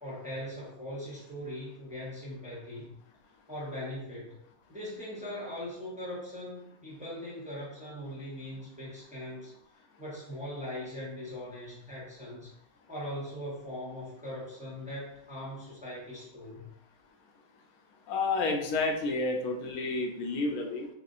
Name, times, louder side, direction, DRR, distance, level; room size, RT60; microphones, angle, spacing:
voice 1, 0.0-3.0 3.5-4.4 4.7-9.5 10.0-12.5 12.9-16.7, left 1 dB, 5° right, -7 dB, 0.9 m, -40 dB
voice 2, 18.1-20.9, left 3 dB, 75° left, 2 dB, 1.1 m, -30 dB
4.3 x 2.6 x 2.4 m, 0.79 s
omnidirectional pair, 1.6 m